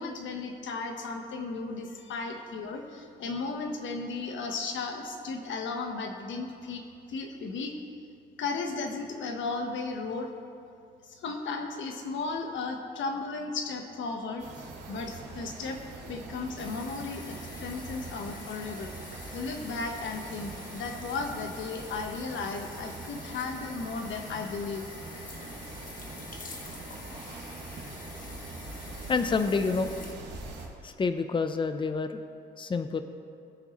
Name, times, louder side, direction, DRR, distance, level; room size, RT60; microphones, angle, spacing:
voice 1, 0.0-6.8 7.1-7.7 8.4-10.3 11.0-18.9 19.3-24.9, left 4 dB, 70° left, 4 dB, 1.2 m, -35 dB
sound 1, 14.4-30.7, right 3 dB, 65° right, 2.0 m, -43 dB
sound 2, 16.6-30.1, left 3 dB, 45° left, 1.4 m, -47 dB
voice 2, 29.1-29.9 30.8-32.2 32.6-33.0, left 4 dB, 25° left, 8 dB, 0.6 m, -28 dB
19.5 x 6.8 x 3.1 m, 2.4 s
cardioid pair, 90°, 20 cm